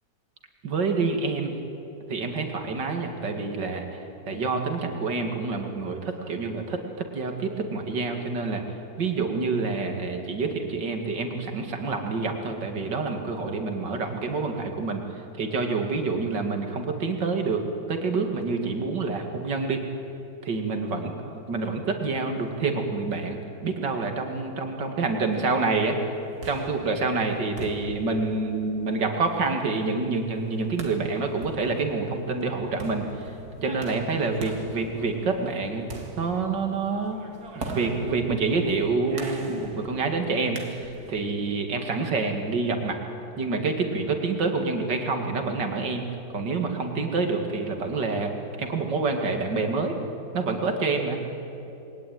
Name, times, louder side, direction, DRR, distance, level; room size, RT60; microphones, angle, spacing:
voice 1, 0.6-1.6 2.1-6.8 7.1-8.6 9.0-19.9 20.4-26.0 26.5-35.9 36.2-37.2 37.6-43.0 43.4-46.0 46.3-50.0 50.3-51.2, right 3 dB, 85° right, 4 dB, 3.0 m, -27 dB
sound 1, 26.1-41.2, right 3 dB, 60° right, 2.8 m, -41 dB
28.0 x 22.0 x 9.4 m, 3.0 s
omnidirectional pair, 1.9 m